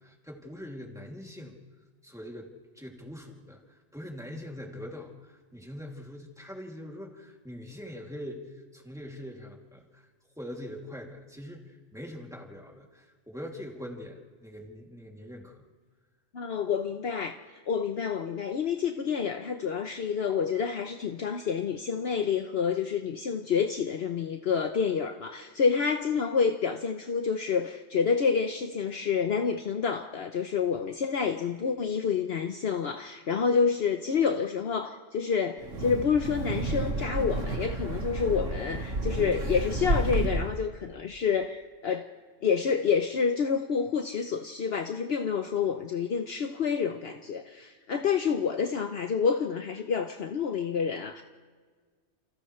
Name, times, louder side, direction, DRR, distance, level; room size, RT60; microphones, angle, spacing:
voice 1, 0.0-1.6 2.0-2.5 2.7-10.0 10.4-15.6, equal, 5° right, -1 dB, 2.8 m, -43 dB
voice 2, 16.3-17.4 17.7-42.1 42.4-51.2, left 6 dB, 60° left, 5 dB, 1.1 m, -28 dB
Wind, 35.6-40.6, right 2 dB, 85° right, 2.1 m, -31 dB
30.0 x 28.5 x 3.3 m, 1.5 s
omnidirectional pair, 1.2 m